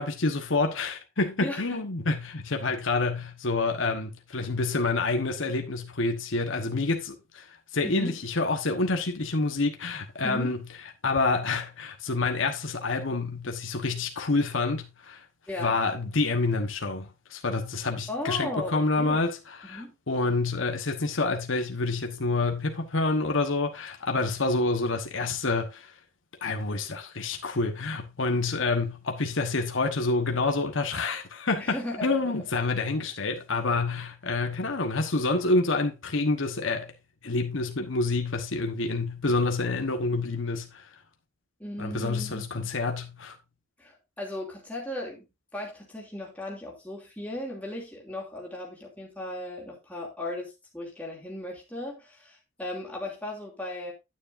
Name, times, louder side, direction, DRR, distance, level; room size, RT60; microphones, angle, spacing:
voice 1, 0.0-10.6 11.0-15.2 15.6-26.0 26.4-36.9 37.2-41.0 41.8-43.4, left 3 dB, 65° left, 1.2 m, -28 dB
voice 2, 1.4-1.8 7.8-8.1 10.2-10.5 15.5-15.8 18.1-19.2 19.6-19.9 31.6-32.3 33.0-33.1 41.6-42.7 43.8-45.3 45.5-53.9, left 1 dB, 5° left, 2.6 m, -36 dB
9.7 x 9.5 x 2.6 m
head